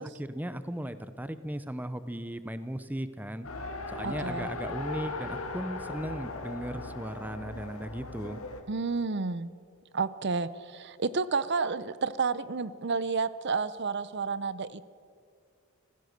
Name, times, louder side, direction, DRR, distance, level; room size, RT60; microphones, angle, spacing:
voice 1, 0.0-3.5 3.9-8.4, right 1 dB, 10° right, 12 dB, 0.6 m, -37 dB
Race car auto racing, 3.4-8.6, left 3 dB, 75° left, 1.9 m, -38 dB
voice 2, 4.0-4.5 8.7-9.5 9.9-14.9, right 4 dB, 55° right, 16 dB, 0.6 m, -31 dB
26.5 x 16.0 x 6.6 m, 2.2 s
head